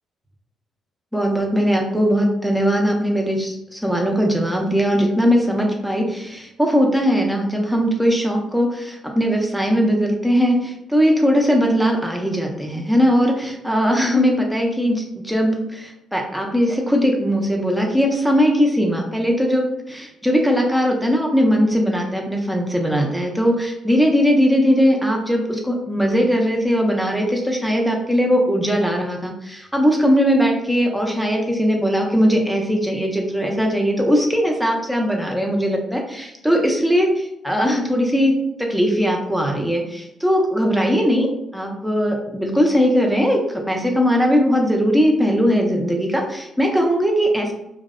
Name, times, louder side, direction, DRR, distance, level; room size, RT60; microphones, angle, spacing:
voice 1, 1.1-47.5, equal, ahead, 1 dB, 0.5 m, -19 dB
2.5 x 2.0 x 2.4 m, 0.85 s
cardioid pair, 90°, 0 cm